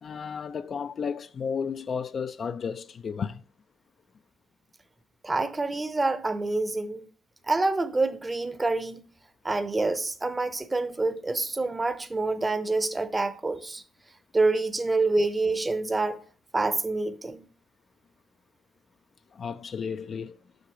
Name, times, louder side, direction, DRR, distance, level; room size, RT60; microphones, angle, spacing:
voice 1, 0.0-3.4 19.3-20.4, left 6 dB, 50° left, 0.3 m, -33 dB
voice 2, 5.2-7.1 7.5-9.0 9.4-13.8 14.3-16.2 16.5-17.5, right 3 dB, 20° right, 0.7 m, -27 dB
7.8 x 5.8 x 2.9 m
supercardioid pair, 75°, 0 cm